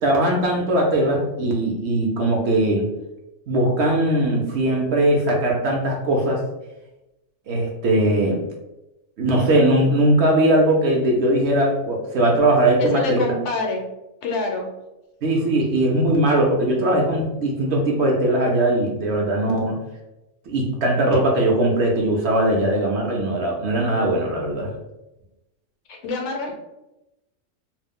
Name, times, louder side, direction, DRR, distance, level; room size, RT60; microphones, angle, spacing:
voice 1, 0.0-2.9 3.5-6.4 7.5-8.4 9.2-13.2 15.2-19.8 20.5-24.7, right 1 dB, 65° right, 0 dB, 0.8 m, -20 dB
voice 2, 12.8-13.8 14.2-14.7 25.9-26.6, left 3 dB, 70° left, 1 dB, 0.8 m, -26 dB
2.4 x 2.0 x 3.5 m, 0.95 s
omnidirectional pair, 1.3 m